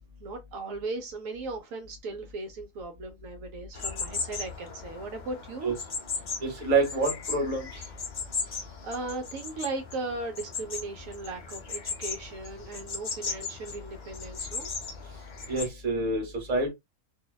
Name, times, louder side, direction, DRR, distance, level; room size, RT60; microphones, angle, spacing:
voice 1, 0.2-5.7 8.5-14.7, right 3 dB, 75° right, 0.9 m, -37 dB
sound 1, 3.7-15.7, left 5 dB, 50° left, 0.6 m, -37 dB
voice 2, 6.4-7.8 15.5-16.7, right 3 dB, 35° right, 0.9 m, -27 dB
2.6 x 2.1 x 2.2 m
omnidirectional pair, 1.5 m